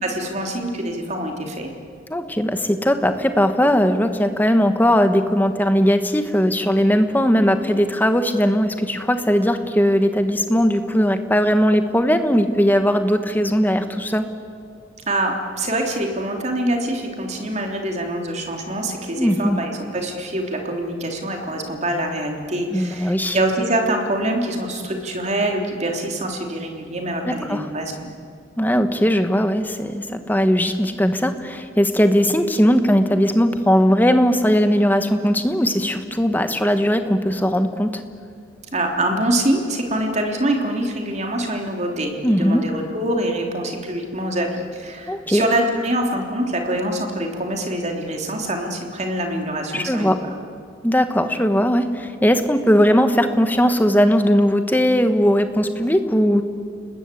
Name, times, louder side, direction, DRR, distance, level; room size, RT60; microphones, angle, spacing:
voice 1, 0.0-1.7 15.1-27.9 38.7-50.3, right 1 dB, 35° right, 2 dB, 3.2 m, -25 dB
voice 2, 2.1-14.3 19.2-19.6 22.7-23.4 27.2-27.7 28.6-38.0 42.2-42.6 45.1-45.4 49.7-50.2 50.8-56.4, equal, 10° left, 8 dB, 1.3 m, -18 dB
29.5 x 20.0 x 8.4 m, 2.3 s
head